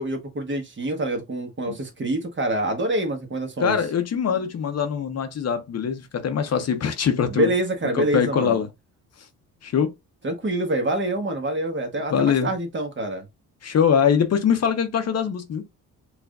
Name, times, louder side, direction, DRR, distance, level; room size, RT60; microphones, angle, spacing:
voice 1, 0.0-3.8 7.3-8.6 10.2-13.2, right 1 dB, 35° right, 1.2 m, -26 dB
voice 2, 3.6-7.5 7.9-8.7 9.6-9.9 12.1-12.5 13.6-15.6, left 7 dB, 50° left, 0.7 m, -22 dB
4.6 x 2.5 x 2.2 m
cardioid pair, 85°, 34 cm